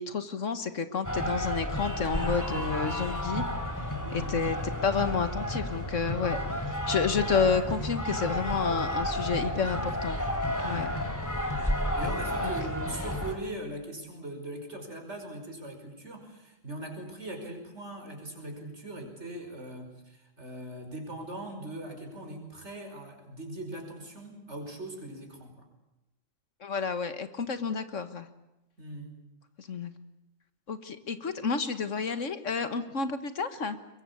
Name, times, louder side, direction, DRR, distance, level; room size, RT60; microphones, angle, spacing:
voice 1, 0.0-3.4 4.1-6.4 6.9-10.2 10.6-10.9 12.4-12.5 26.6-28.3 29.6-29.9 30.7-33.8, left 5 dB, 65° left, 10 dB, 1.8 m, -30 dB
sound 1, 1.0-13.3, left 1 dB, 15° left, 3.3 m, -31 dB
voice 2, 4.0-4.3 10.6-11.0 12.0-25.7 28.8-29.2, right 1 dB, 55° right, 4 dB, 5.7 m, -40 dB
22.5 x 22.5 x 8.6 m, 0.94 s
omnidirectional pair, 1.4 m